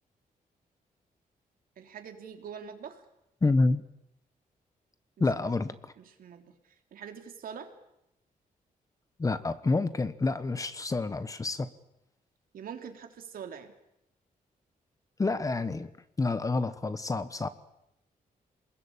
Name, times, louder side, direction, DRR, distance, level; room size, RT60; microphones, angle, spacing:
voice 1, 1.8-3.0 5.2-5.5 6.0-6.5 6.9-7.7 12.5-13.7, right 7 dB, 75° right, 5 dB, 3.3 m, -44 dB
voice 2, 3.4-3.8 5.2-5.9 9.2-11.7 15.2-15.9 16.2-17.5, left 3 dB, 20° left, 13 dB, 1.2 m, -28 dB
27.5 x 20.5 x 8.9 m, 0.84 s
wide cardioid pair, 145°, 15 cm